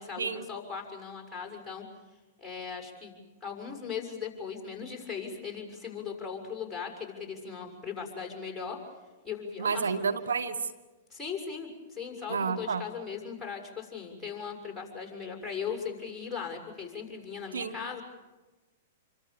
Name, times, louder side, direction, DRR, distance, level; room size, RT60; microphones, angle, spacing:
voice 1, 0.0-1.8 2.4-8.8 9.2-10.1 11.1-18.0, left 6 dB, 5° left, 0 dB, 6.6 m, -38 dB
voice 2, 9.6-10.6 12.3-12.8 17.5-17.7, right 5 dB, 85° right, 10 dB, 1.4 m, -30 dB
27.5 x 25.0 x 7.1 m, 1.2 s
hypercardioid pair, 120°, 0 cm